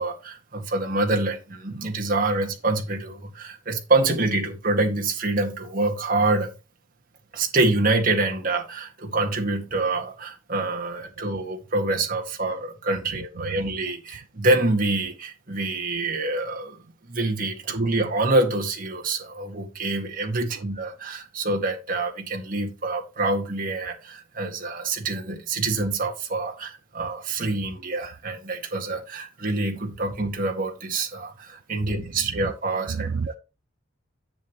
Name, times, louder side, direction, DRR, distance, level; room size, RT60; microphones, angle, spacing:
voice 1, 0.0-6.5 7.3-16.8 17.1-33.4, right 2 dB, 40° right, 1.9 m, -26 dB
voice 2, 13.2-13.7 17.7-17.8 20.5-20.6 31.8-32.5 32.9-33.3, right 5 dB, 65° right, 0.4 m, -33 dB
10.0 x 8.2 x 3.0 m
head